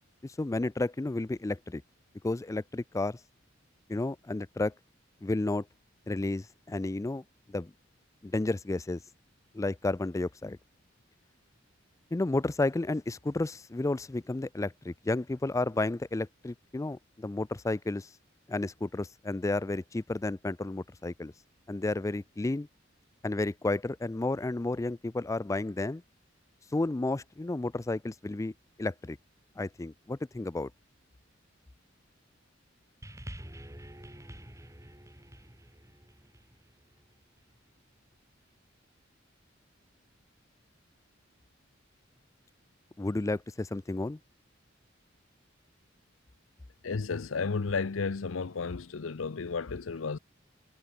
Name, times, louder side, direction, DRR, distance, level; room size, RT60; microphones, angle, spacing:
voice 1, 0.2-1.8 2.2-3.2 3.9-4.7 5.2-5.7 6.1-7.7 8.2-9.0 9.5-10.6 12.1-18.1 18.5-21.3 21.7-22.7 23.2-26.0 26.7-28.5 28.8-29.2 29.6-30.7 43.0-44.2, left 2 dB, 15° left, 0.4 m, -32 dB
sound 1, 33.0-37.6 38.4-38.5, equal, 15° right, 5.2 m, -48 dB
voice 2, 46.8-50.2, left 4 dB, 85° left, 0.7 m, -33 dB
head